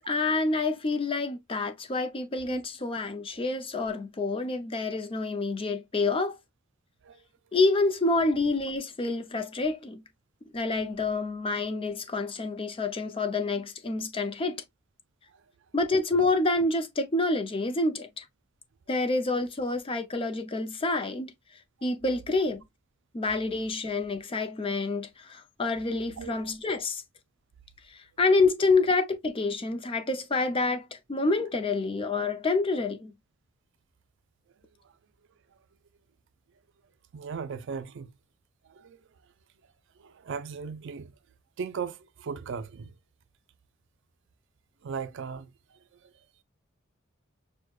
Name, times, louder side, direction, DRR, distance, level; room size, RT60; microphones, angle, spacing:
voice 1, 0.1-6.4 7.5-10.0 10.5-14.6 15.7-18.2 18.9-21.3 21.8-22.6 23.1-27.0 28.2-33.1, left 3 dB, 25° left, 0.5 m, -27 dB
voice 2, 37.1-38.1 38.7-39.0 40.0-41.1 41.6-42.9 44.8-45.5, right 6 dB, 60° right, 0.4 m, -37 dB
6.3 x 2.2 x 2.3 m
head